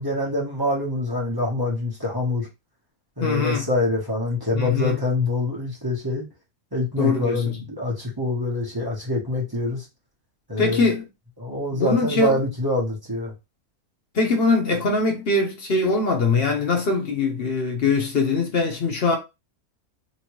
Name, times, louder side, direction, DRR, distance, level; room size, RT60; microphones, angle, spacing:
voice 1, 0.0-2.5 3.2-6.2 6.7-9.8 10.5-10.9 11.4-13.3, left 2 dB, 20° right, 0.8 m, -25 dB
voice 2, 3.2-3.7 4.5-5.0 7.0-7.6 10.6-11.0 11.7-12.4 14.1-19.2, left 3 dB, 50° left, 0.8 m, -22 dB
3.0 x 2.9 x 3.0 m
omnidirectional pair, 1.6 m